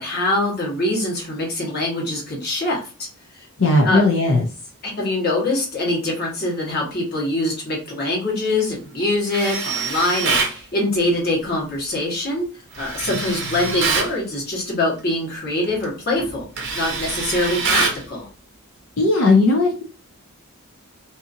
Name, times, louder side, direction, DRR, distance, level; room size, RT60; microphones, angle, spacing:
voice 1, 0.0-2.8 3.3-3.5 3.8-4.0 4.8-12.4 12.8-16.5 16.7-18.3, left 1 dB, 45° left, -3 dB, 1.2 m, -23 dB
voice 2, 3.6-4.4 19.0-19.8, left 2 dB, 60° left, 0 dB, 0.5 m, -16 dB
Tools, 9.3-10.6 12.7-14.1 15.6-15.8 16.2-18.0, right 4 dB, 50° right, 0.7 m, -24 dB
2.7 x 2.4 x 2.6 m, 0.36 s
head